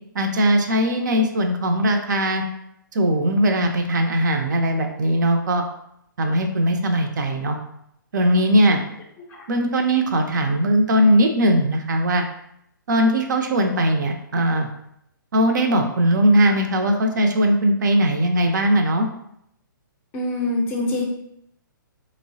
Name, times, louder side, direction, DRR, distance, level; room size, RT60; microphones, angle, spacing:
voice 1, 0.1-2.4 2.9-5.6 6.2-7.6 8.1-8.8 9.5-12.2 12.9-14.7 15.3-19.1, right 1 dB, 60° right, 4 dB, 0.4 m, -19 dB
voice 2, 20.1-21.0, left 2 dB, 20° left, -1 dB, 0.5 m, -24 dB
3.1 x 2.0 x 2.6 m, 0.75 s
figure-of-eight pair, 130°, 11 cm